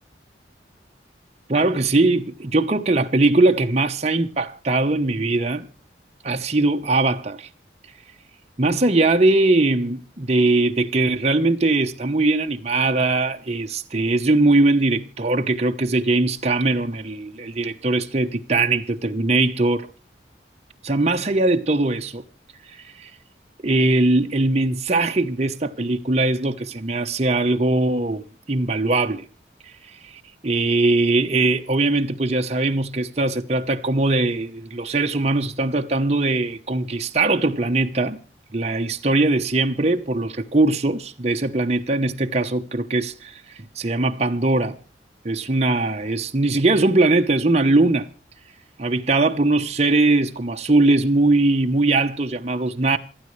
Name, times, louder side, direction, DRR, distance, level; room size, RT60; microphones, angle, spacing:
voice 1, 1.5-5.7 6.2-7.5 8.6-19.9 20.8-22.2 22.7-23.1 23.6-28.2 28.5-29.3 29.8-38.2 38.5-44.8 45.2-48.1 48.8-53.0, right 2 dB, 35° right, 1.0 m, -21 dB
27.5 x 9.6 x 3.2 m
head